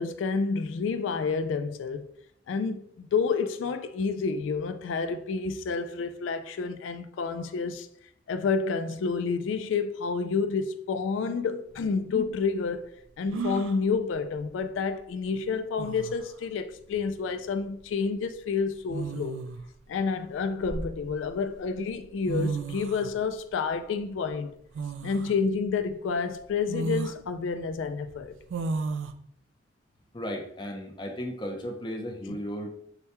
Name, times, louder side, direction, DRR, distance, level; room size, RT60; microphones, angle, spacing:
voice 1, 0.0-2.1 2.5-7.9 8.3-12.9 13.2-19.4 19.9-24.5 25.0-28.3 32.3-32.4, left 5 dB, 90° left, 0.3 m, -29 dB
sound 1, 11.7-11.8 13.3-13.8 15.3-15.4 15.8-16.3 17.6-17.8 18.9-19.7 20.3-21.3 22.0-22.1 22.3-23.1 24.7-25.3 25.9-26.0 26.7-27.2 28.5-29.1, right 3 dB, 85° right, 0.4 m, -33 dB
voice 2, 30.1-32.7, equal, 25° left, 0.6 m, -35 dB
6.6 x 2.2 x 2.9 m
head